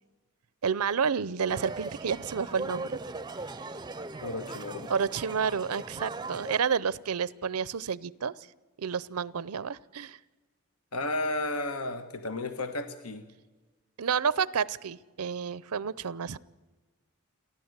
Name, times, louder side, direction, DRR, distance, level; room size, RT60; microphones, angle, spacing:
voice 1, 0.6-3.0 4.9-8.3 8.8-10.2 14.0-16.4, right 6 dB, 85° right, 20 dB, 0.6 m, -30 dB
sound 1, 1.5-6.6, right 3 dB, 20° right, 0.5 m, -39 dB
voice 2, 4.2-4.9 10.9-13.2, left 2 dB, 80° left, 9 dB, 1.4 m, -33 dB
29.0 x 11.5 x 8.1 m, 1.3 s
head